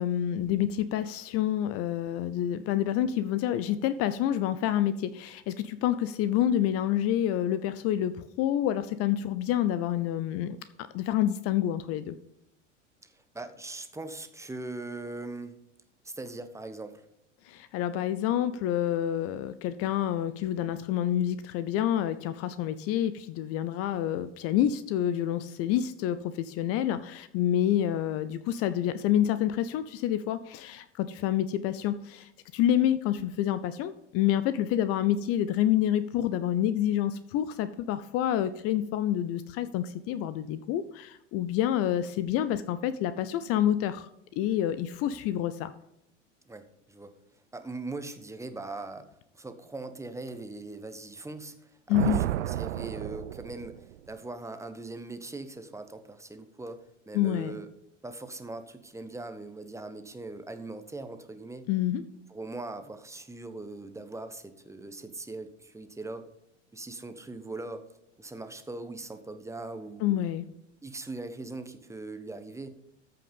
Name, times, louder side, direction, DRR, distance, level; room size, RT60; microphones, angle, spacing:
voice 1, 0.0-12.1 17.5-44.1 44.4-45.7 51.9-52.2 57.1-57.6 61.7-62.0 70.0-70.4, left 11 dB, 40° left, 14 dB, 0.6 m, -28 dB
voice 2, 13.0-15.5 16.0-17.0 46.5-47.1 47.5-57.7 58.0-61.6 62.3-66.3 66.7-67.8 68.2-70.2 70.8-72.7, right 2 dB, 10° right, 9 dB, 1.0 m, -40 dB
Thunder, 51.9-54.1, right 14 dB, 70° right, 0.5 m, -32 dB
13.5 x 5.8 x 5.4 m, 0.81 s
figure-of-eight pair, 85°, 37 cm